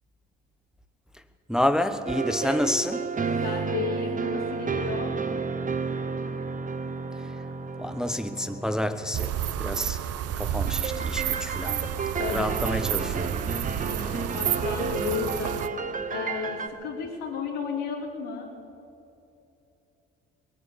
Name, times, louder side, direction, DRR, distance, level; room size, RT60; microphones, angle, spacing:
voice 1, 1.5-3.1 7.8-10.0 10.4-11.8 12.2-13.4, left 1 dB, ahead, 0.8 m, -29 dB
sound 1, 2.1-9.8 10.7-16.7, right 4 dB, 25° right, 1.0 m, -32 dB
voice 2, 3.4-5.2 12.2-12.5 13.9-15.6 16.1-18.5, left 6 dB, 80° left, 3.1 m, -33 dB
sound 2, 9.1-15.7, right 10 dB, 50° right, 0.7 m, -30 dB
20.0 x 9.7 x 7.3 m
hypercardioid pair, 60°, 31 cm